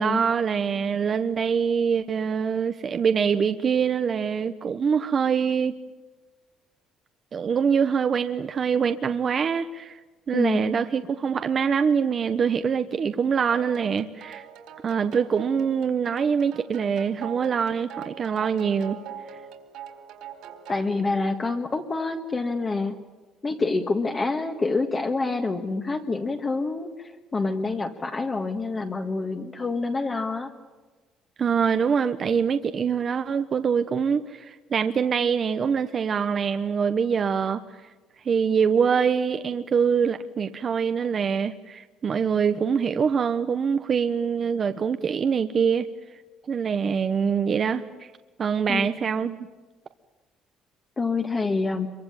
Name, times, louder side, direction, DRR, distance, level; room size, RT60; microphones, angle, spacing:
voice 1, 0.0-5.7 7.3-10.0 10.3-14.5 14.8-19.0 31.4-37.6 38.2-45.9 46.5-48.1 48.4-49.5, right 6 dB, 35° right, 9 dB, 1.0 m, -24 dB
voice 2, 10.3-10.7 20.7-22.9 23.4-30.5 48.7-48.9 51.0-51.9, left 3 dB, 20° left, 4 dB, 1.7 m, -27 dB
sound 1, 13.5-20.9, right 8 dB, 70° right, 4.3 m, -42 dB
27.0 x 23.5 x 9.0 m, 1.3 s
cardioid pair, 160°, 0 cm